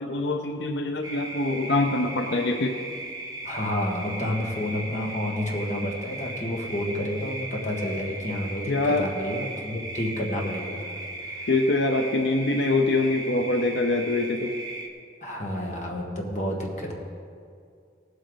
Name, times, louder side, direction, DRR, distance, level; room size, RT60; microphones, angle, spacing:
voice 1, 0.0-2.8 8.7-9.1 11.5-14.6, left 2 dB, 80° left, 5 dB, 0.6 m, -24 dB
sound 1, 1.0-14.9, right 2 dB, 20° right, 0.9 m, -37 dB
voice 2, 3.4-10.8 11.2-11.5 15.2-16.9, left 1 dB, 40° left, -1 dB, 1.7 m, -30 dB
17.5 x 8.1 x 4.0 m, 2.3 s
head